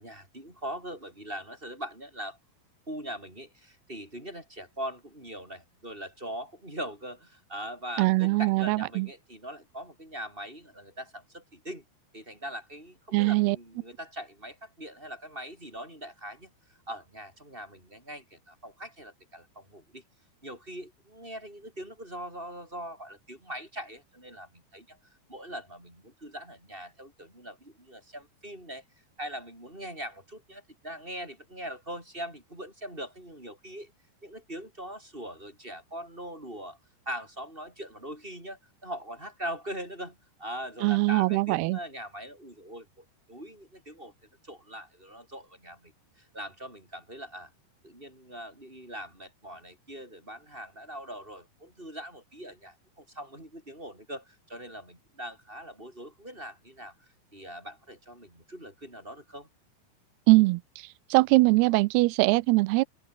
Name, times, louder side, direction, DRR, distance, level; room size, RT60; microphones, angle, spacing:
voice 1, 0.0-2.4 2.9-11.8 12.1-20.0 20.4-25.0 25.3-28.8 29.2-33.9 34.2-36.8 37.1-44.1 44.4-47.5 47.8-59.5, right 1 dB, 10° right, 7.0 m, -41 dB
voice 2, 8.0-9.1 13.1-13.6 40.8-41.8 60.3-60.6 61.1-62.8, right 22 dB, 80° right, 2.4 m, -22 dB
open air
omnidirectional pair, 4.9 m